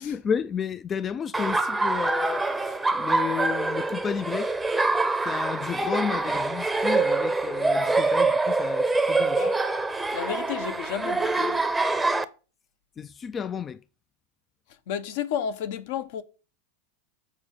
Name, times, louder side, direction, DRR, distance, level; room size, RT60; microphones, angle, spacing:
voice 1, 0.0-4.5 5.2-9.5 13.0-13.8, left 7 dB, 25° left, 0.3 m, -32 dB
Laughter, 1.3-12.2, right 3 dB, 10° right, 0.7 m, -25 dB
voice 2, 10.1-11.6 14.9-16.2, left 9 dB, 65° left, 0.8 m, -32 dB
7.3 x 4.4 x 4.9 m
hypercardioid pair, 105°, 0 cm